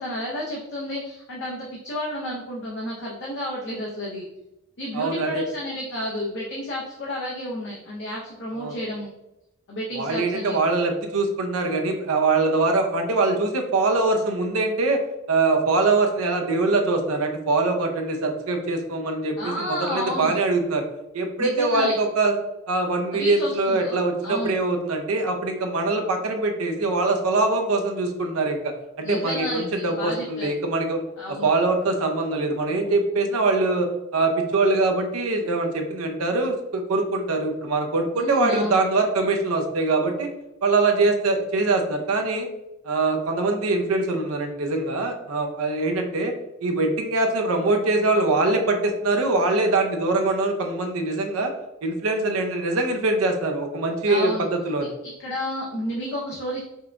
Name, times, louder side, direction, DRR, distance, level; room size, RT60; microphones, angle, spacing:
voice 1, 0.0-4.3 4.8-9.1 9.7-10.6 19.4-20.3 21.4-22.0 23.1-24.5 29.0-30.5 31.2-31.5 38.1-38.8 54.0-54.4 55.0-56.6, equal, 55° left, -3 dB, 0.7 m, -31 dB
voice 2, 4.9-5.4 8.6-8.7 9.9-15.0 15.3-20.8 21.1-22.4 22.7-31.0 31.3-40.3 40.6-42.5 42.8-46.3 46.6-51.5 51.8-54.9, right 3 dB, 80° right, 4 dB, 0.6 m, -23 dB
5.3 x 2.2 x 2.5 m, 0.91 s
head